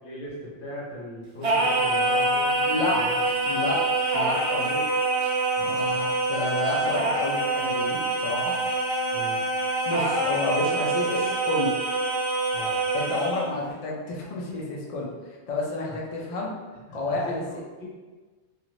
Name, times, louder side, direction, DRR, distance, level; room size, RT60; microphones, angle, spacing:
voice 1, 0.0-2.7 2.9-3.2 5.6-5.9 9.1-9.4 12.5-12.8 15.9-16.0 16.3-16.4 16.9-17.9, left 1 dB, 50° left, -6 dB, 1.0 m, -39 dB
Singing, 1.4-13.5, right 2 dB, 55° right, 0.4 m, -25 dB
voice 2, 2.7-3.1 3.5-3.9 4.1-4.8 5.6-8.6 9.9-11.8 12.9-16.5 16.9-17.4, left 2 dB, 70° left, -2 dB, 0.3 m, -30 dB
2.5 x 2.4 x 3.0 m, 1.3 s
omnidirectional pair, 1.2 m